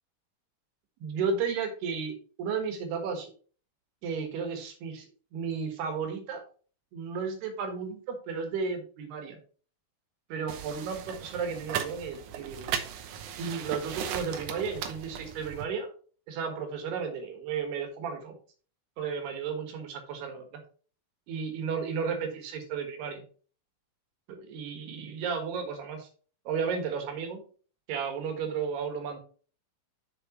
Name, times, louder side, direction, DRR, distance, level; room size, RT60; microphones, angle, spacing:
voice 1, 1.0-3.3 4.0-5.1 5.3-6.4 6.9-9.4 10.3-12.9 13.4-15.9 16.3-18.3 19.0-20.6 21.3-23.2 24.3-26.1 26.5-27.4 27.9-29.2, right 6 dB, 90° right, 5 dB, 3.7 m, -33 dB
sound 1, 10.5-15.7, right 9 dB, 70° right, 2.0 m, -37 dB
7.5 x 7.0 x 3.1 m, 0.40 s
omnidirectional pair, 4.5 m